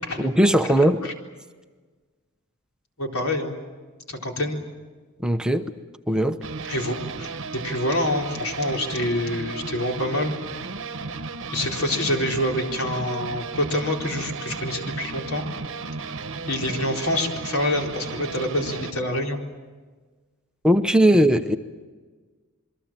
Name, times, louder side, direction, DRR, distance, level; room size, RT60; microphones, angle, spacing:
voice 1, 0.2-1.0 5.2-5.7 6.1-6.4 20.6-21.6, right 1 dB, 5° right, 7 dB, 0.9 m, -19 dB
voice 2, 3.0-3.5 4.1-4.6 6.6-10.3 11.5-15.5 16.5-19.4, left 1 dB, 80° left, 1 dB, 4.1 m, -26 dB
sound 1, 6.4-18.9, right 4 dB, 65° right, 1.2 m, -34 dB
27.5 x 23.0 x 7.5 m, 1.4 s
head